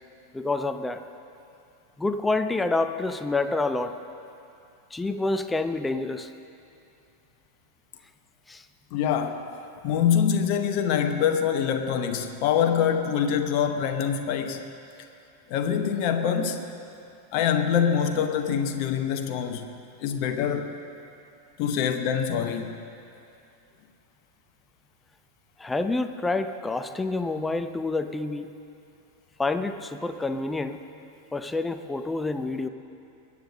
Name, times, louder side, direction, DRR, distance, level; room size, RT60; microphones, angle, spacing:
voice 1, 0.3-1.0 2.0-4.0 4.9-6.3 8.5-8.6 25.6-28.5 29.4-30.8 31.3-32.7, left 3 dB, 10° left, 10 dB, 0.6 m, -28 dB
voice 2, 8.9-9.4 9.8-14.7 15.5-16.6 17.3-19.7 20.0-20.7 21.6-22.8, left 8 dB, 45° left, 6 dB, 0.9 m, -25 dB
21.5 x 8.4 x 6.5 m, 2.7 s
figure-of-eight pair, 90°, 0 cm